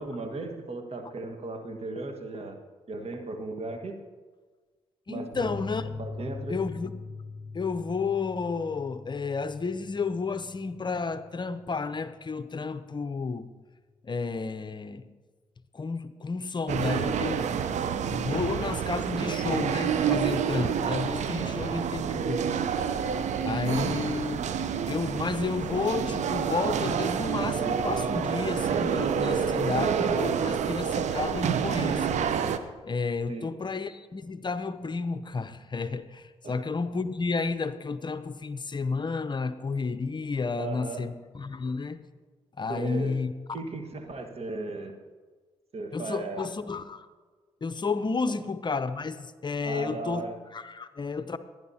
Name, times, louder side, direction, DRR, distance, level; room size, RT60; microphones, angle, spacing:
voice 1, 0.0-2.6 2.9-4.0 5.1-5.5 6.0-6.6 21.3-21.7 33.3-33.7 36.4-36.6 40.6-41.0 42.7-43.2 43.5-45.0 45.7-46.5 48.3-48.4 49.6-50.4, right 3 dB, 50° right, 5 dB, 1.6 m, -36 dB
voice 2, 5.1-5.9 6.5-6.9 7.5-13.5 14.0-15.1 15.7-17.4 18.1-22.5 23.4-24.5 24.9-32.1 32.8-42.0 42.6-43.3 45.9-47.1 47.6-50.3 50.5-51.4, left 4 dB, 35° left, 12 dB, 0.7 m, -31 dB
sound 1, 5.3-12.4 12.7-12.8 13.1-13.2, left 3 dB, 85° right, 1.4 m, -42 dB
sound 2, 16.7-32.6, right 7 dB, 65° right, 0.7 m, -28 dB
18.5 x 10.5 x 2.8 m, 1.4 s
supercardioid pair, 45°, 13 cm